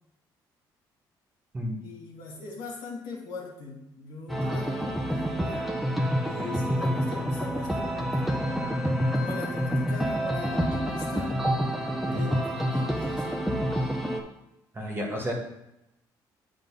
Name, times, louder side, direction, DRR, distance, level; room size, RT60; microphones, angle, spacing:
voice 1, 1.8-5.7 6.2-8.7 9.1-11.4 12.1-13.7, left 3 dB, 90° left, -4 dB, 2.0 m, -40 dB
sound 1, 4.3-14.2, equal, ahead, 1.1 m, -28 dB
Bass guitar, 6.0-12.2, left 7 dB, 90° right, 1.5 m, -47 dB
voice 2, 14.7-15.3, equal, 30° right, -1 dB, 1.7 m, -31 dB
8.1 x 3.7 x 5.5 m, 0.88 s
cardioid pair, 90°, 8 cm